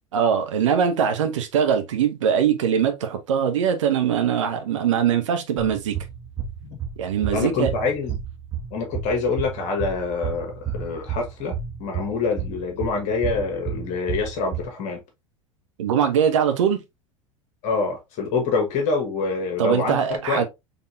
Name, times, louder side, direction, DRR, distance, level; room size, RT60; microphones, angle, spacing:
voice 1, 0.1-6.0 7.0-7.7 15.8-16.8 19.6-20.5, right 8 dB, 65° right, 1.0 m, -22 dB
sound 1, 5.6-14.7, right 8 dB, 20° right, 1.1 m, -32 dB
voice 2, 7.3-8.2 8.7-11.5 11.8-15.0 17.6-20.5, left 4 dB, 45° left, 1.4 m, -26 dB
4.3 x 3.5 x 2.7 m
figure-of-eight pair, 80°, 17 cm